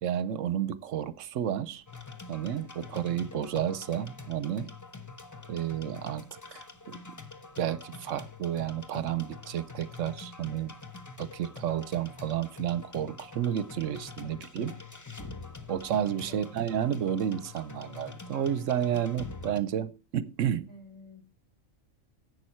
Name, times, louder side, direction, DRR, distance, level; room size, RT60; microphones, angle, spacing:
voice 1, 0.0-1.8 2.3-4.7 5.5-7.0 7.6-10.7 11.2-14.7 15.7-20.7, right 10 dB, 75° right, 1.0 m, -31 dB
sound 1, 1.9-19.6, left 4 dB, 20° left, 0.6 m, -45 dB
voice 2, 14.2-14.7 16.3-16.6 20.7-21.2, left 2 dB, 75° left, 4.7 m, -50 dB
11.0 x 8.1 x 4.4 m
omnidirectional pair, 1.4 m